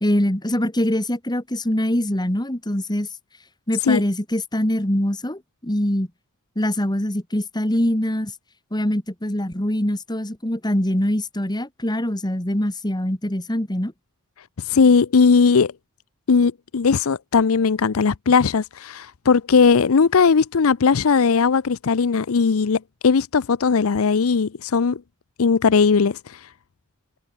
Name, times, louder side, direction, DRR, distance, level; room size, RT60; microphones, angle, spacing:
voice 1, 0.0-3.1 3.7-6.1 6.6-8.3 8.7-13.9, left 1 dB, 20° left, 2.4 m, -23 dB
voice 2, 14.7-15.7 16.3-25.0 25.4-26.4, left 5 dB, 70° left, 0.6 m, -18 dB
head